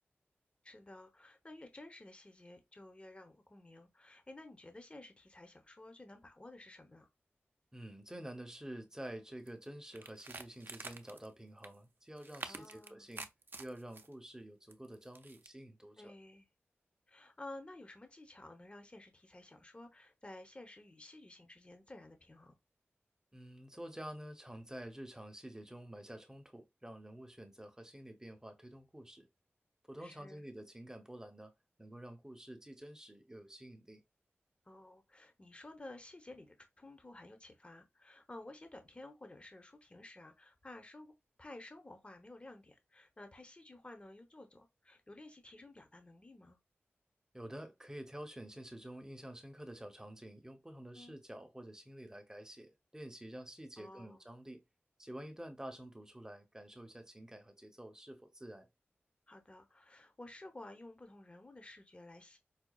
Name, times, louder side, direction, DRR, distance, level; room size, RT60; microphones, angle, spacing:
voice 1, 0.6-7.1 12.4-13.1 16.0-16.5 17.1-22.5 30.0-30.4 34.6-41.1 41.4-46.6 50.9-51.2 53.8-54.2 59.3-62.4, left 2 dB, 25° left, 0.7 m, -53 dB
voice 2, 7.7-13.3 13.6-16.1 23.3-29.3 29.9-31.5 31.8-34.0 47.3-54.6 55.0-58.7, right 1 dB, 15° right, 0.7 m, -49 dB
sound 1, 9.5-9.6 9.9-11.3 11.6-11.8 12.2-14.1 14.7-15.5, right 3 dB, 55° right, 0.5 m, -48 dB
4.8 x 2.3 x 2.3 m
wide cardioid pair, 65°, 4 cm